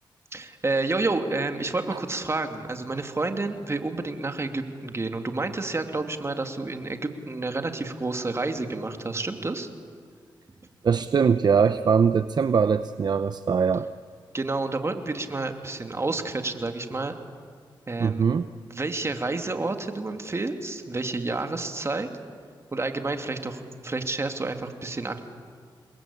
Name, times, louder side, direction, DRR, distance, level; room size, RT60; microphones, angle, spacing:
voice 1, 0.3-9.7 14.3-17.1 17.9-18.3 18.7-22.1 22.7-25.2, right 3 dB, 30° right, 6 dB, 2.8 m, -29 dB
voice 2, 10.8-13.9 18.0-18.5, right 6 dB, 55° right, 12 dB, 0.7 m, -22 dB
28.5 x 22.0 x 8.6 m, 2.2 s
cardioid pair, 60°, 9 cm